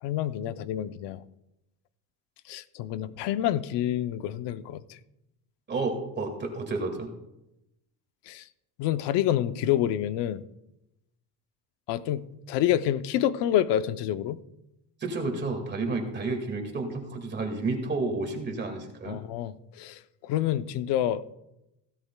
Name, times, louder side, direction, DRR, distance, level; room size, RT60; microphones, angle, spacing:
voice 1, 0.0-1.2 2.5-5.0 8.3-8.4 8.8-10.4 11.9-14.4 19.1-21.2, left 11 dB, 80° left, 0.7 m, -28 dB
voice 2, 5.7-7.1 15.0-19.2, right 3 dB, 25° right, 2.0 m, -31 dB
16.0 x 12.5 x 2.2 m
cardioid pair, 160°, 41 cm